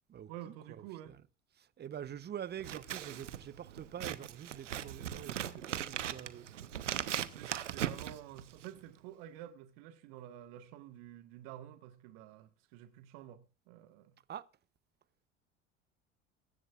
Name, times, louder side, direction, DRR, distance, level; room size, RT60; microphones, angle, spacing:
voice 1, 0.3-1.2 6.9-14.1, right 12 dB, 60° right, 1.6 m, -50 dB
voice 2, 1.8-6.4 14.3-14.5, right 9 dB, 30° right, 0.9 m, -45 dB
Scissors, 2.6-8.8, right 10 dB, 80° right, 1.0 m, -39 dB
23.0 x 11.0 x 2.5 m
hypercardioid pair, 75°, 36 cm